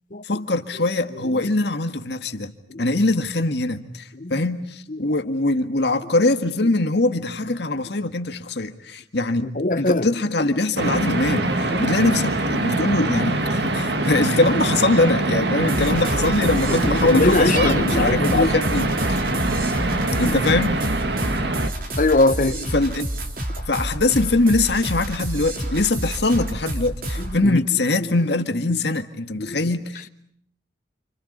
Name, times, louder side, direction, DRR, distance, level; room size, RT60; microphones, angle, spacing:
voice 1, 0.2-2.5 2.8-9.5 9.8-19.3 20.2-20.7 22.7-23.1 23.7-30.0, left 2 dB, 65° left, 1.8 m, -22 dB
voice 2, 9.4-10.1 11.7-11.8 16.7-18.5 20.2-20.3 22.0-22.7 27.4-27.6 28.7-28.8 29.4-29.7, left 2 dB, 45° left, 1.0 m, -22 dB
sound 1, 10.8-21.7, right 2 dB, 65° right, 1.9 m, -23 dB
sound 2, 15.7-27.4, right 1 dB, 50° right, 3.7 m, -29 dB
30.0 x 28.0 x 5.5 m
head